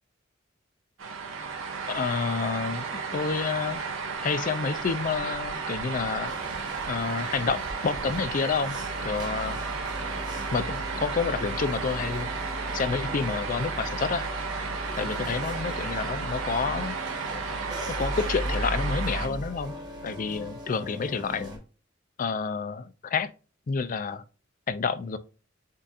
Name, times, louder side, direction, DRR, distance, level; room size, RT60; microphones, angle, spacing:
sound 1, 1.0-19.3, right 5 dB, 85° right, 1.0 m, -33 dB
voice 1, 1.9-2.9 3.1-3.8 4.2-6.3 6.9-8.7 9.0-9.6 10.5-12.3 12.7-14.2 15.0-16.9 18.0-19.7 20.0-21.6 22.2-23.3 23.7-24.2 24.7-25.2, left 5 dB, 40° left, 0.4 m, -29 dB
sound 2, 6.3-21.6, equal, 20° right, 1.3 m, -37 dB
7.3 x 2.7 x 2.4 m
head